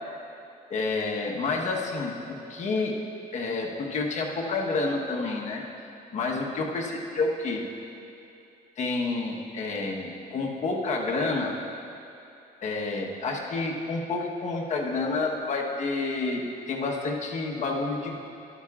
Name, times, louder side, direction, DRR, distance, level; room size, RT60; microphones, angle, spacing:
voice 1, 0.7-3.0 3.3-5.6 6.1-7.6 8.8-11.5 12.6-18.2, left 3 dB, 45° left, -1 dB, 1.2 m, -29 dB
13.0 x 12.0 x 2.5 m, 2.7 s
cardioid pair, 110°, 17 cm